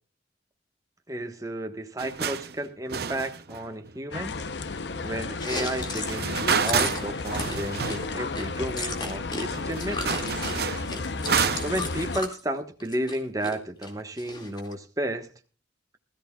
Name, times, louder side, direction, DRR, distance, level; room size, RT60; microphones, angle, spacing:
voice 1, 1.1-4.4 5.0-10.2 11.6-15.3, right 1 dB, 20° right, 1.3 m, -32 dB
sound 1, 2.0-2.5 2.9-3.9 6.1-8.2 8.5-8.6 9.2-9.3 9.5-11.9, right 6 dB, 60° right, 0.8 m, -29 dB
sound 2, 4.1-12.2, left 3 dB, 70° left, 0.8 m, -33 dB
Chewing mastication, 5.3-9.5 9.7-12.4 12.8-13.5 13.8-14.7, left 2 dB, 25° left, 2.2 m, -34 dB
20.5 x 14.0 x 2.4 m
head